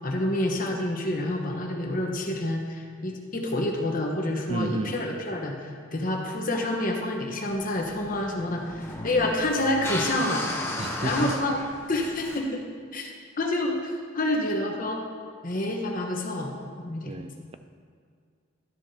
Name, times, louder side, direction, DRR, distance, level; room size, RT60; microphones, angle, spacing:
voice 1, 0.0-10.4 11.0-11.6 11.9-12.6 12.9-13.1 13.4-15.0 15.4-17.1, left 1 dB, 45° left, 1 dB, 1.0 m, -28 dB
voice 2, 4.5-4.9 10.8-11.4 17.1-17.6, right 2 dB, 30° right, 9 dB, 0.4 m, -31 dB
sound 1, 7.5-12.5, left 1 dB, 10° left, 0.8 m, -35 dB
12.5 x 7.0 x 2.8 m, 2.1 s
head